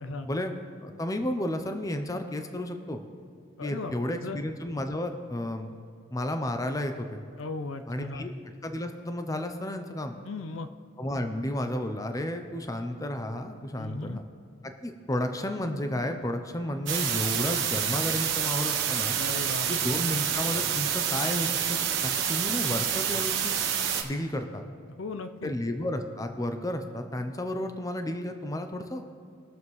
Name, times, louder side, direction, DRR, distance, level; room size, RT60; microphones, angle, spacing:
voice 1, 0.8-3.0 3.6-5.7 6.1-7.2 7.9-8.3 8.6-10.2 11.0-14.2 14.6-19.2 19.7-23.6 24.0-24.6 25.4-29.0, left 1 dB, 15° left, 6 dB, 0.6 m, -32 dB
voice 2, 3.6-4.4 7.4-8.4 10.2-10.7 13.8-14.2 19.2-20.2 25.0-25.5, left 3 dB, 70° left, 10 dB, 0.5 m, -37 dB
sound 1, 16.9-24.0, right 8 dB, 60° right, 1.1 m, -28 dB
21.5 x 7.2 x 3.2 m, 2.3 s
head